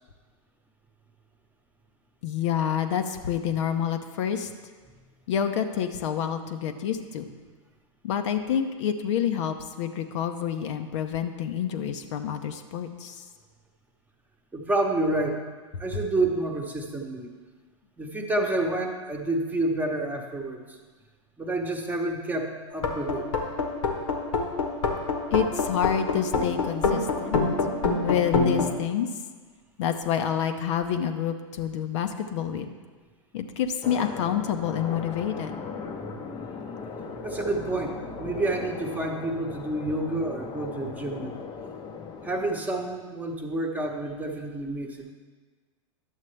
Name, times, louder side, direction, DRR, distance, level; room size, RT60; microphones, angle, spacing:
voice 1, 2.2-4.5 5.3-7.3 8.0-13.2 25.3-27.4 28.0-29.1 29.8-32.7 33.3-35.6, left 9 dB, 65° left, 6 dB, 0.7 m, -28 dB
voice 2, 14.5-15.4 15.8-17.3 18.0-20.8 21.4-23.3 35.9-41.3 42.2-45.1, right 2 dB, 10° right, 2 dB, 1.0 m, -29 dB
sound 1, 22.7-28.7, left 4 dB, 80° left, 1.2 m, -25 dB
sound 2, 33.8-42.6, left 5 dB, 25° left, 0.7 m, -38 dB
11.0 x 7.3 x 3.2 m, 1.4 s
hypercardioid pair, 105°, 16 cm